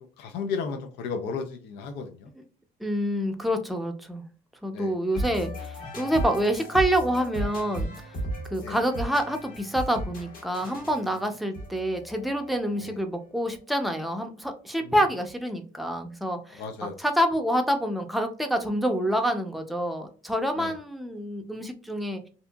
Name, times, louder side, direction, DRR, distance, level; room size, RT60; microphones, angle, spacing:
voice 1, 0.2-2.3 4.7-4.9 8.6-8.8 12.8-12.9 14.9-15.0 16.6-17.0 20.6-20.7, left 5 dB, 80° left, 7 dB, 0.5 m, -34 dB
voice 2, 2.8-4.2 4.6-8.1 8.5-16.6 17.0-22.2, equal, ahead, 4 dB, 0.5 m, -27 dB
sound 1, 5.1-13.0, equal, 60° left, 1.4 m, -35 dB
2.8 x 2.5 x 2.2 m, 0.38 s
cardioid pair, 110°, 17 cm